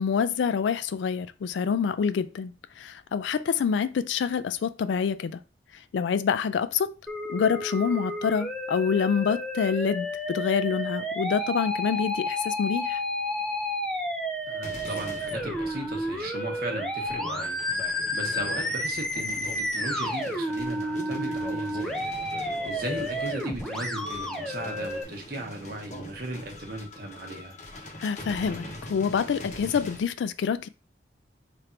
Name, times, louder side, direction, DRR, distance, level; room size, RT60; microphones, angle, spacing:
voice 1, 0.0-5.4 5.9-6.9 7.3-13.0 28.0-30.7, left 6 dB, 75° left, 0.3 m, -27 dB
Musical instrument, 7.1-25.0, left 1 dB, 5° left, 0.4 m, -31 dB
voice 2, 14.5-17.6 18.1-22.0 22.6-27.6, right 2 dB, 55° right, 1.0 m, -37 dB
sound 1, 14.6-30.1, left 1 dB, 40° left, 0.8 m, -42 dB
3.3 x 2.6 x 4.3 m
head